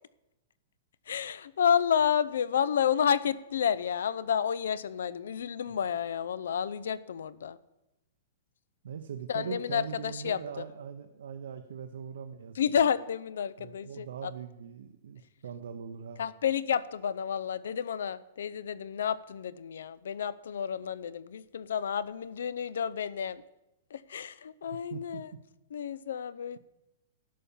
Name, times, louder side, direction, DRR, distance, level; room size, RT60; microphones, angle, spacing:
voice 1, 1.1-7.6 9.3-10.6 12.6-14.3 16.2-23.4 23.9-25.3 25.7-26.6, left 8 dB, 80° left, 0.5 m, -30 dB
voice 2, 8.8-12.6 13.6-16.2 24.9-25.2, right 7 dB, 80° right, 0.8 m, -41 dB
11.0 x 5.8 x 7.0 m
hypercardioid pair, 175°, 0 cm